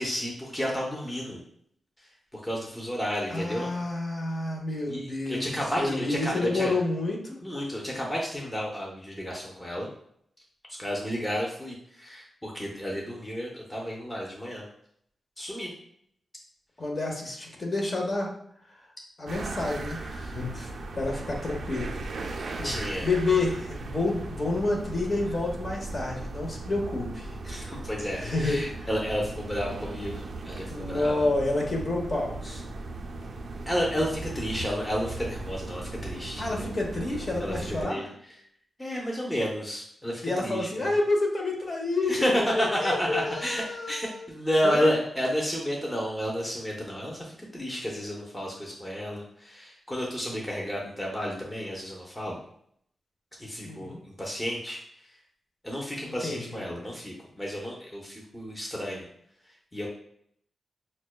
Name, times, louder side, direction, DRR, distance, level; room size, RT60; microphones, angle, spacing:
voice 1, 0.0-1.4 2.3-3.7 4.9-6.8 7.4-9.9 10.7-14.6 15.4-15.7 22.6-23.1 27.4-31.3 32.4-32.6 33.7-36.7 37.4-38.1 38.8-40.9 42.1-52.4 53.4-54.8 55.6-59.1 59.7-59.9, equal, 10° left, -2 dB, 0.7 m, -31 dB
voice 2, 3.3-5.4 5.8-7.4 16.8-18.3 19.2-21.9 22.2-22.7 23.0-27.3 28.2-28.9 30.6-32.4 36.4-38.1 40.2-44.2 44.6-44.9 53.6-54.0 56.1-56.6, left 2 dB, 40° left, 0 dB, 0.9 m, -29 dB
sound 1, 19.3-37.8, right 2 dB, 70° right, 0.4 m, -37 dB
5.8 x 2.2 x 2.2 m, 0.69 s
cardioid pair, 90°, 0 cm